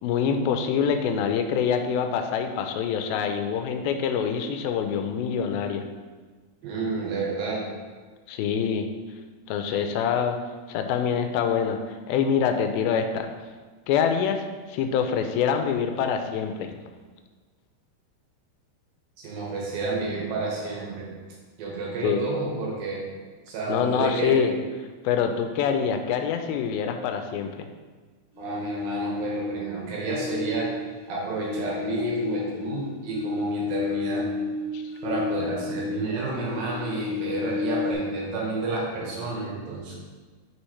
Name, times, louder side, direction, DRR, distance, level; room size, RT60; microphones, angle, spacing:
voice 1, 0.0-5.8 8.3-8.9 9.5-10.4 10.7-13.3 13.9-16.7 22.0-22.2 23.7-24.5 25.0-27.7 34.7-34.8, left 7 dB, 90° left, 6 dB, 2.4 m, -25 dB
voice 2, 6.6-7.6 19.2-21.1 21.6-23.0 23.5-24.4 28.4-30.7 31.1-34.3 35.0-40.0, right 3 dB, 80° right, -3 dB, 3.0 m, -30 dB
sound 1, 28.3-29.6 30.0-36.1 36.3-37.9, left 5 dB, 50° right, 1.8 m, -31 dB
6.3 x 5.9 x 3.2 m, 1.4 s
omnidirectional pair, 4.2 m